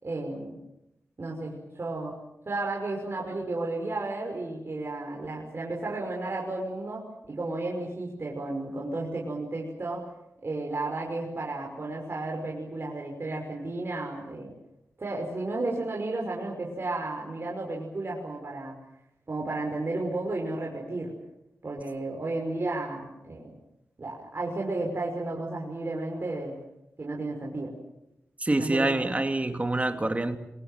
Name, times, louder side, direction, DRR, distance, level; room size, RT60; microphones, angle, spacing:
voice 1, 0.0-0.6 1.2-2.1 2.5-10.1 10.4-14.5 15.0-18.8 19.3-21.1 21.6-23.5 24.0-26.6 27.0-27.7 28.6-29.1, right 2 dB, 50° right, 5.7 m, -33 dB
voice 2, 28.4-30.4, right 2 dB, 25° right, 2.5 m, -26 dB
27.5 x 24.0 x 7.5 m
wide cardioid pair, 90°, 5 cm